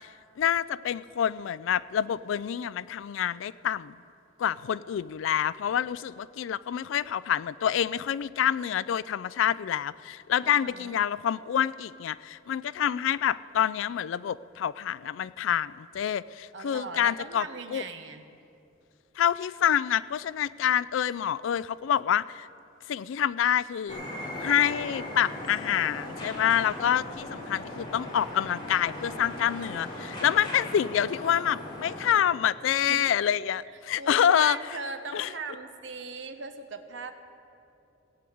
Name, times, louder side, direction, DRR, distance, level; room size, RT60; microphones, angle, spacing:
voice 1, 0.4-3.9 4.4-17.4 17.7-17.8 19.2-22.5 22.9-24.0 24.4-34.6 35.1-35.3, left 9 dB, 75° left, 18 dB, 0.3 m, -27 dB
voice 2, 10.4-11.0 16.5-18.2 32.9-33.1 34.0-37.2, right 4 dB, 65° right, 8 dB, 1.0 m, -39 dB
sound 1, 23.9-32.1, left 1 dB, 25° left, 3.1 m, -38 dB
16.5 x 7.8 x 8.4 m, 2.7 s
head